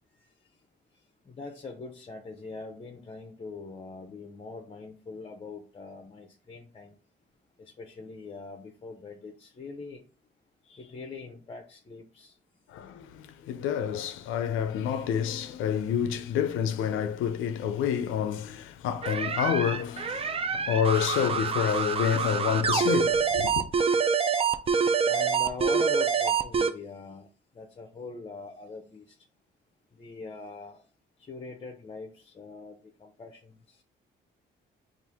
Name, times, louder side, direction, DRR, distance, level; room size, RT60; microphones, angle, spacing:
voice 1, 1.3-7.0 7.6-10.0 10.6-12.4 25.1-27.3 27.5-29.2 29.9-30.8 31.2-33.8, left 4 dB, 30° left, 0.6 m, -42 dB
voice 2, 12.7-23.7, left 8 dB, 90° left, 0.5 m, -28 dB
sound 1, 19.0-26.7, right 6 dB, 30° right, 0.4 m, -26 dB
4.3 x 2.5 x 3.4 m
cardioid pair, 90°, 20 cm